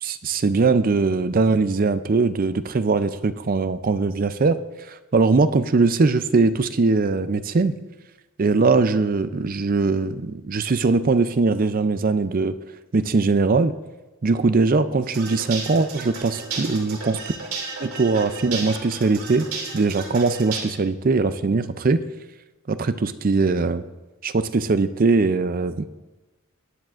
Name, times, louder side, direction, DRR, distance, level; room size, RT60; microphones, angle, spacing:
voice 1, 0.0-4.6 4.9-7.7 8.4-12.6 12.9-13.7 14.2-17.2 17.8-19.5 19.7-22.0 22.7-23.8 24.2-25.8, right 3 dB, 40° right, 12 dB, 0.5 m, -21 dB
sound 1, 15.0-20.6, right 4 dB, 80° right, 2.6 m, -33 dB
18.0 x 9.7 x 2.5 m, 1.1 s
head